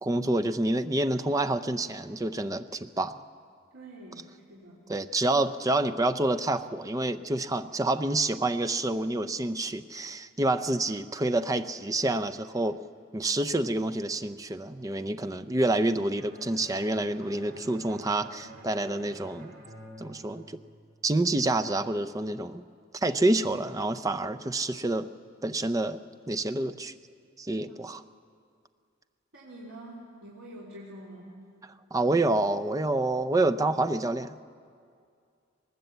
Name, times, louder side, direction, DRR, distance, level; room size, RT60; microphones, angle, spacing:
voice 1, 0.0-3.2 4.9-12.8 13.1-19.5 20.0-20.6 21.0-22.6 22.9-25.1 25.4-26.0 26.3-26.9 27.4-28.0 31.9-34.5, right 2 dB, 15° right, 9 dB, 0.5 m, -28 dB
voice 2, 3.7-4.8 27.5-27.8 29.3-31.4, right 1 dB, 85° right, -6 dB, 3.4 m, -46 dB
Bowed string instrument, 16.2-21.1, right 1 dB, 50° right, 4.0 m, -49 dB
20.5 x 19.5 x 8.0 m, 2.3 s
head